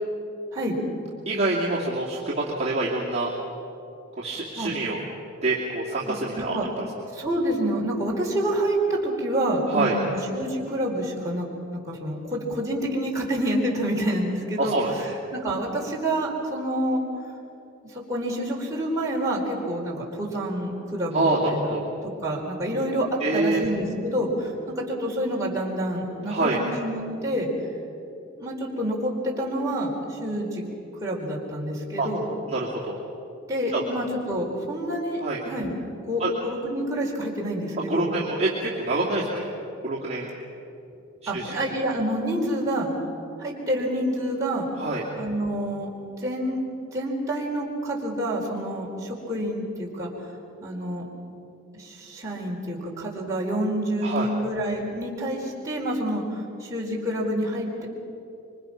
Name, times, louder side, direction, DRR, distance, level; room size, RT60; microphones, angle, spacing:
voice 1, 1.3-3.3 4.2-5.0 5.4-6.8 9.7-9.9 14.6-14.9 21.1-21.8 23.2-23.6 26.3-26.6 32.0-32.1 32.5-33.0 33.7-33.8 35.2-35.4 36.2-36.3 37.9-39.5 39.8-40.3 41.3-41.5 44.8-45.0 54.0-54.3, right 2 dB, 30° right, -7 dB, 2.7 m, -26 dB
voice 2, 6.1-6.7 7.1-17.0 18.1-21.7 22.2-27.5 28.4-30.6 31.0-32.2 33.5-35.7 36.1-38.1 41.3-42.9 43.4-44.7 45.2-45.9 46.2-46.6 46.9-50.1 50.6-51.1 51.7-57.7, right 1 dB, 15° right, -4 dB, 4.4 m, -28 dB
26.5 x 24.5 x 6.0 m, 2.8 s
head